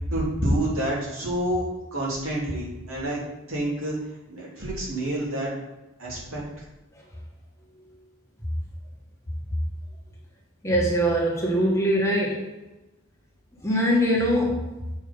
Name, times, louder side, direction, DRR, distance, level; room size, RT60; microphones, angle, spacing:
voice 1, 0.1-1.7 1.9-3.2 3.5-3.9 4.3-5.5 6.0-6.4, right 1 dB, 70° right, -5 dB, 2.9 m, -28 dB
voice 2, 10.6-12.5 13.6-14.8, equal, 15° left, -3 dB, 1.3 m, -22 dB
7.0 x 4.7 x 5.3 m, 1.0 s
head